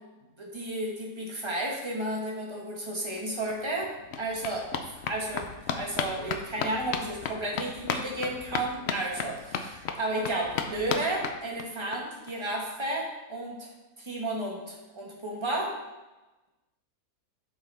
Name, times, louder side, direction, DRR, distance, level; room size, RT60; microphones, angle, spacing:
voice 1, 0.4-3.9 4.2-13.7 14.0-15.7, right 1 dB, 20° right, -2 dB, 1.2 m, -33 dB
sound 1, 3.2-3.3 3.5-12.0 12.3-12.4 12.6-12.7 13.0-13.1, left 6 dB, 65° left, 0.6 m, -35 dB
7.7 x 5.5 x 3.3 m, 1.1 s
omnidirectional pair, 1.6 m